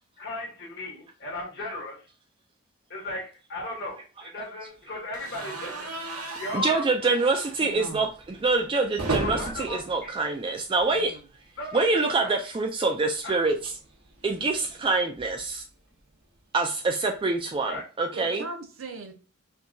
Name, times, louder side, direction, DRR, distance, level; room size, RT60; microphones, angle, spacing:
voice 1, 0.2-2.0 2.9-5.9 6.4-7.1 9.2-10.1 11.6-11.9 12.2-12.3 13.2-13.4 17.6-17.8, left 2 dB, 50° left, 1.2 m, -36 dB
sound 1, 5.1-11.2 11.5-11.7 11.9-12.0 13.3-15.6, right 2 dB, 90° right, 0.9 m, -37 dB
voice 2, 6.5-11.2 11.7-13.7 14.2-15.6 16.5-18.4, right 3 dB, 25° right, 0.3 m, -26 dB
voice 3, 7.6-8.0 10.9-11.1 18.1-19.1, right 4 dB, 65° right, 0.6 m, -38 dB
4.4 x 2.3 x 2.6 m
head